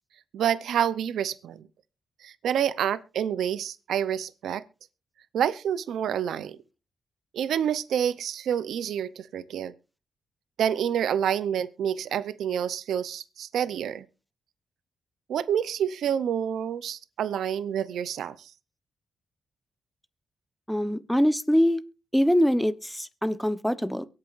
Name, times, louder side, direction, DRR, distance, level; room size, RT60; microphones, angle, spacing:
voice 1, 0.3-1.6 2.2-4.6 5.3-6.6 7.3-9.7 10.6-14.1 15.3-18.5, right 9 dB, 85° right, 15 dB, 0.7 m, -28 dB
voice 2, 20.7-21.8 22.1-24.1, equal, ahead, 12 dB, 1.0 m, -23 dB
23.5 x 8.7 x 2.6 m, 0.31 s
cardioid pair, 75°, 0 cm